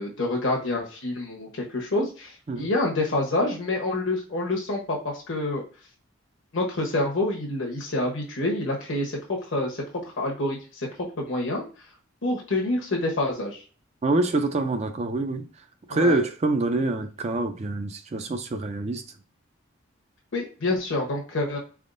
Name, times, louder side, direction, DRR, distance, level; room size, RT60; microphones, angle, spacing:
voice 1, 0.0-5.6 6.5-9.2 9.5-9.8 10.2-10.9 11.2-11.6 12.2-13.6 15.9-16.2 20.3-21.6, left 2 dB, 70° left, 1.0 m, -27 dB
voice 2, 14.0-15.5 15.9-19.0, right 2 dB, 35° right, 0.4 m, -25 dB
4.2 x 3.5 x 2.5 m
head